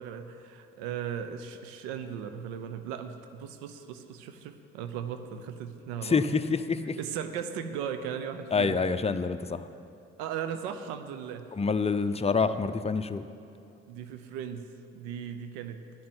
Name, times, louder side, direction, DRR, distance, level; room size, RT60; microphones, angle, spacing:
voice 1, 0.0-6.2 7.0-8.8 10.2-11.4 13.9-14.7 14.9-15.8, right 8 dB, 90° right, 9 dB, 0.8 m, -37 dB
voice 2, 6.0-7.0 8.5-9.7 11.5-13.3, left 4 dB, 20° left, 9 dB, 0.7 m, -27 dB
11.0 x 7.6 x 8.9 m, 2.5 s
hypercardioid pair, 55°, 31 cm